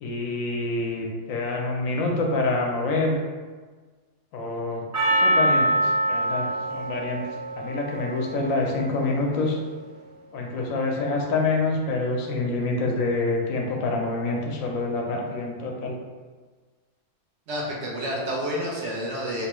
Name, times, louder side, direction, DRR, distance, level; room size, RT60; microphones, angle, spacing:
voice 1, 0.0-3.2 4.3-4.9 5.2-7.2 7.6-9.6 10.3-16.0, left 3 dB, 80° left, 0 dB, 1.0 m, -26 dB
Percussion, 4.9-9.4, right 1 dB, 15° right, 0.7 m, -25 dB
voice 2, 17.5-19.5, equal, 65° right, -3 dB, 0.9 m, -29 dB
3.0 x 2.2 x 3.0 m, 1.4 s
omnidirectional pair, 1.4 m